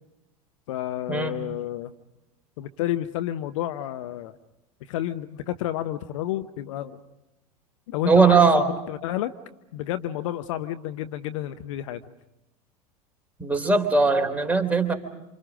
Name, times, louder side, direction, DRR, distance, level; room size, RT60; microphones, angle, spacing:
voice 1, 0.7-1.9 2.6-4.4 4.8-7.0 7.9-9.3 9.7-12.0, left 13 dB, 55° left, 10 dB, 1.0 m, -30 dB
voice 2, 8.1-8.7 13.4-14.9, right 4 dB, 10° right, 4 dB, 3.4 m, -19 dB
28.5 x 27.5 x 5.1 m, 0.93 s
figure-of-eight pair, 80°, 19 cm